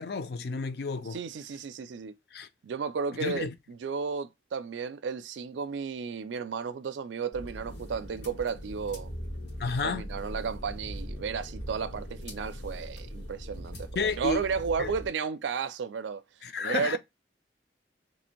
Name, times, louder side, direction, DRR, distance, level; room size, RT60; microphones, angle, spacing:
voice 1, 0.0-1.2 2.3-2.5 3.2-3.5 9.6-10.0 14.0-14.4 14.8-14.9 16.4-17.0, left 4 dB, 60° left, 0.4 m, -31 dB
voice 2, 1.1-2.1 2.6-9.1 9.8-13.9 14.2-16.2 16.6-17.0, right 6 dB, 85° right, 0.4 m, -33 dB
sound 1, 7.3-15.1, equal, 90° left, 1.5 m, -40 dB
3.2 x 2.6 x 4.3 m
head